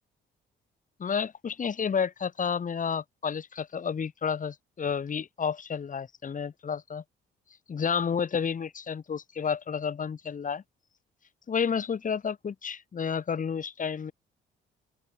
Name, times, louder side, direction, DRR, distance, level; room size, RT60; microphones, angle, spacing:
voice 1, 1.0-7.0 7.7-10.6 11.5-14.1, left 6 dB, 40° left, 2.2 m, -31 dB
open air
cardioid pair, 90°, 20 cm